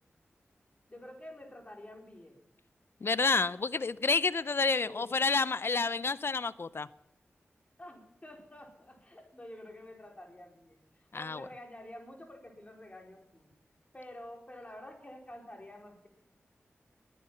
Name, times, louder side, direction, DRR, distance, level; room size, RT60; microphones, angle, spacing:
voice 1, 0.9-2.4 4.8-5.1 7.8-13.5 13.9-16.1, left 1 dB, 30° left, 1 dB, 4.3 m, -49 dB
voice 2, 3.0-6.9 11.1-11.4, left 4 dB, 60° left, 17 dB, 0.5 m, -29 dB
21.5 x 9.4 x 5.7 m, 0.91 s
cardioid pair, 45°, 5 cm